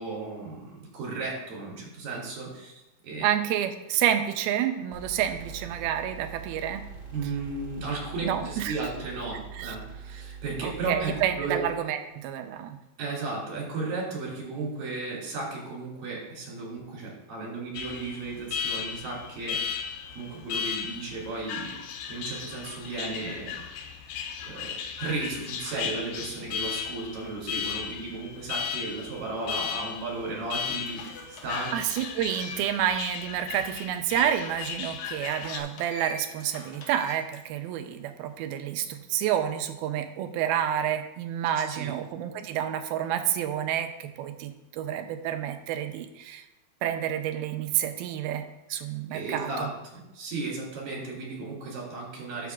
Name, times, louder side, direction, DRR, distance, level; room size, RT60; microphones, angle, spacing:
voice 1, 0.0-2.7 3.0-3.3 7.1-11.1 11.4-11.6 13.0-19.6 20.2-21.7 22.1-23.5 24.5-24.7 25.0-31.7 41.7-41.9 49.1-52.5, right 3 dB, 65° right, -3 dB, 4.5 m, -35 dB
voice 2, 3.2-6.8 8.2-8.8 9.3-9.8 10.6-12.8 31.7-46.4 46.8-49.7, right 10 dB, 85° right, 8 dB, 2.5 m, -29 dB
sound 1, 4.9-11.7, right 5 dB, 40° right, 3.4 m, -43 dB
Alarm, 17.8-35.6, left 7 dB, 90° left, 2.6 m, -36 dB
sound 2, 29.9-30.0 30.5-32.9 33.3-33.4 35.3-37.4, left 2 dB, 70° left, 1.5 m, -44 dB
11.5 x 7.2 x 2.4 m, 0.96 s
omnidirectional pair, 4.4 m